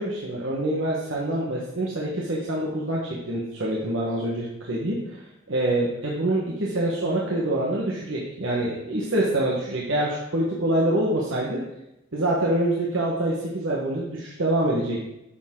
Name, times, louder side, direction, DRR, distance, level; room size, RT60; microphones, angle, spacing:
voice 1, 0.0-5.1 5.5-11.6 12.1-15.1, right 1 dB, 70° right, -4 dB, 1.5 m, -25 dB
10.5 x 7.2 x 3.9 m, 0.88 s
head